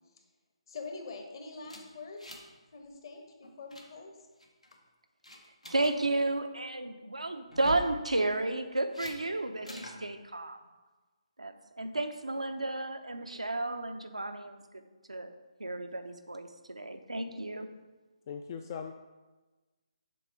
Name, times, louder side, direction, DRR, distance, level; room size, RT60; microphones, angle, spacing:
voice 1, 0.7-4.1 13.3-13.4 17.3-17.4, left 4 dB, 45° left, 3 dB, 1.1 m, -45 dB
sound 1, 1.7-2.6 2.8-3.1 3.4-3.9 4.4-4.8 5.2-5.9 7.5-7.9 8.9-9.2 9.7-10.0, equal, 90° left, 1.1 m, -44 dB
voice 2, 5.7-10.6 11.4-15.3 15.6-17.7, right 2 dB, 85° right, 7 dB, 0.6 m, -33 dB
voice 3, 18.3-18.9, left 7 dB, 30° left, 6 dB, 0.3 m, -39 dB
7.0 x 3.6 x 4.7 m, 1.2 s
figure-of-eight pair, 145°, 3 cm